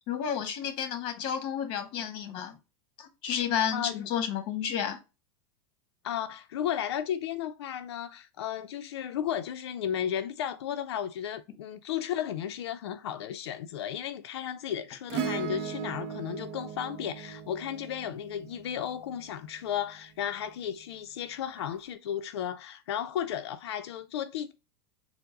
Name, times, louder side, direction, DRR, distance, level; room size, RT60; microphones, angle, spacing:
voice 1, 0.1-2.6 3.0-5.0, left 8 dB, 40° left, 1.0 m, -31 dB
voice 2, 3.7-4.0 6.0-24.5, left 9 dB, 90° left, 0.4 m, -34 dB
Acoustic guitar / Strum, 15.1-19.7 21.6-21.7, right 7 dB, 45° right, 0.7 m, -38 dB
4.5 x 2.0 x 3.7 m
supercardioid pair, 145°, 13 cm